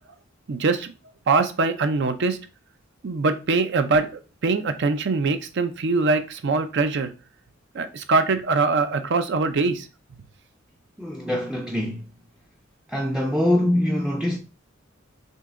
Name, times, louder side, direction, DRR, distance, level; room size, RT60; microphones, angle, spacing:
voice 1, 0.5-0.9 1.3-2.4 3.0-7.1 7.7-9.9, right 3 dB, 60° right, 0.5 m, -23 dB
voice 2, 11.0-12.0 12.9-14.4, left 1 dB, ahead, 0.4 m, -23 dB
6.4 x 2.8 x 2.5 m
head